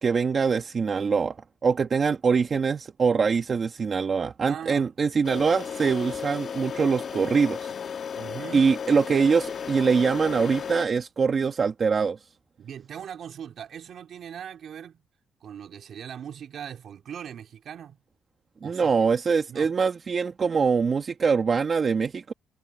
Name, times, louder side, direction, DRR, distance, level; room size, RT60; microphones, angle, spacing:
voice 1, 0.0-1.4 1.6-7.7 8.5-12.2 18.6-22.3, right 5 dB, 40° right, 1.6 m, -23 dB
voice 2, 4.5-4.9 8.2-8.7 12.6-15.0 15.4-18.0 18.6-19.1 19.5-19.7, right 8 dB, 65° right, 3.8 m, -40 dB
sound 1, 5.2-10.9, left 7 dB, 55° left, 1.3 m, -34 dB
cardioid pair, 90°, 0 cm